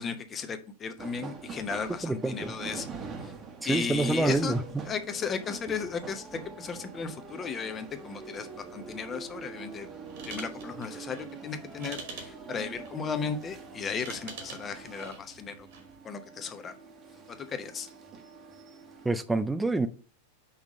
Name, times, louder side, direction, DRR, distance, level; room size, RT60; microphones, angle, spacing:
voice 1, 0.0-2.9 3.2-3.3 3.6-4.6 4.8-9.9 10.3-15.7 16.0-16.7 17.3-17.9, left 6 dB, 25° left, 0.8 m, -35 dB
sound 1, 1.0-19.1, right 5 dB, 25° right, 1.1 m, -44 dB
voice 2, 2.0-2.5 3.6-4.6 19.0-19.9, right 3 dB, 5° right, 0.4 m, -27 dB
sound 2, 10.0-16.0, right 4 dB, 55° right, 1.6 m, -47 dB
5.6 x 3.6 x 5.0 m
figure-of-eight pair, 90°, 0 cm